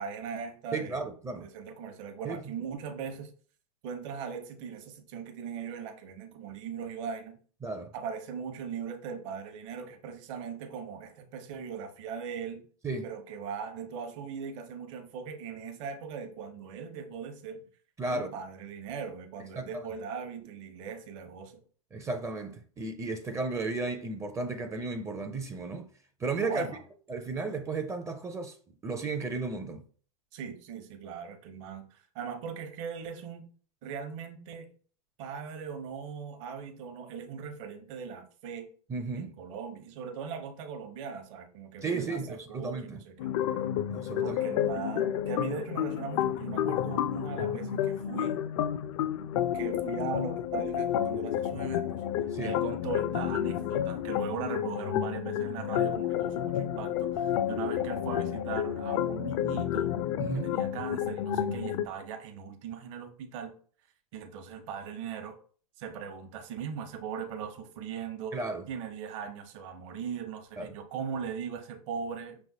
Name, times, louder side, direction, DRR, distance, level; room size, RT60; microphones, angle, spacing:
voice 1, 0.0-1.0 1.4-3.3 3.8-7.4 7.9-12.7 13.0-17.6 18.1-21.6 26.3-26.8 30.3-33.5 33.8-34.7 35.2-38.7 39.1-43.3 44.2-48.4 49.5-52.0 52.4-60.0 60.3-63.5 64.1-65.4 65.8-68.3 68.7-72.4, right 6 dB, 55° right, 0.9 m, -39 dB
voice 2, 0.7-1.5 2.2-2.5 7.6-7.9 12.8-13.1 18.0-18.3 19.6-19.9 21.9-25.9 26.2-26.7 27.1-28.6 28.8-29.8 38.9-39.3 41.8-43.0 43.9-44.4 52.3-52.6 60.2-60.5 68.3-68.6 70.6-70.7, right 3 dB, 15° right, 0.5 m, -34 dB
sound 1, 43.2-61.9, left 10 dB, 55° left, 0.4 m, -30 dB
5.5 x 3.3 x 2.7 m
hypercardioid pair, 105°, 19 cm